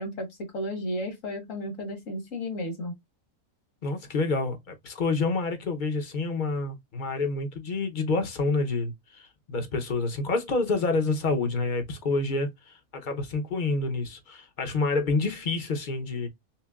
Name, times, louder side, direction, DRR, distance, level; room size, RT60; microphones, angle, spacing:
voice 1, 0.0-2.9, left 1 dB, 70° left, 1.7 m, -33 dB
voice 2, 3.8-16.3, left 3 dB, 45° left, 0.8 m, -28 dB
5.7 x 2.1 x 2.3 m
omnidirectional pair, 1.4 m